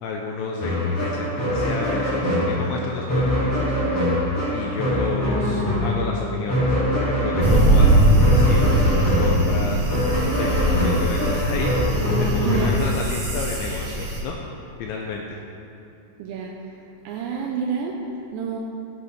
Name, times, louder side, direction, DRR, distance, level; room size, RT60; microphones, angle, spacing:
voice 1, 0.0-3.7 4.5-9.8 10.4-14.4 14.8-15.4, left 4 dB, 80° left, 0 dB, 2.8 m, -31 dB
sound 1, 0.6-12.7, left 1 dB, 20° left, 2.0 m, -23 dB
sound 2, 7.4-14.2, right 1 dB, 55° right, 1.6 m, -21 dB
voice 2, 12.4-12.8 16.2-16.8 17.0-18.6, right 6 dB, 85° right, 0 dB, 2.6 m, -29 dB
16.5 x 9.5 x 3.4 m, 2.8 s
omnidirectional pair, 5.9 m